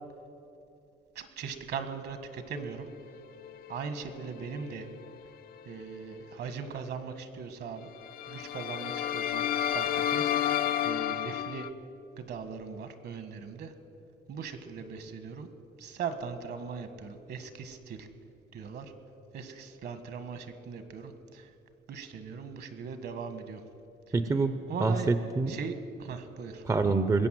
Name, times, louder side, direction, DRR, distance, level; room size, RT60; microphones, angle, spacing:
voice 1, 1.1-2.9 3.7-4.9 5.6-7.9 8.3-11.7 12.2-13.7 14.3-15.5 15.8-18.1 18.5-18.9 19.3-21.5 21.9-23.6 24.7-25.1 25.5-26.6, right 5 dB, 60° right, 9 dB, 1.5 m, -39 dB
sound 1, 3.4-5.2 5.5-5.8 8.0-11.7, left 10 dB, 55° left, 0.6 m, -32 dB
voice 2, 24.1-25.6 26.6-27.3, right 3 dB, 15° right, 10 dB, 0.6 m, -26 dB
21.0 x 8.3 x 7.6 m, 2.6 s
cardioid pair, 120°, 19 cm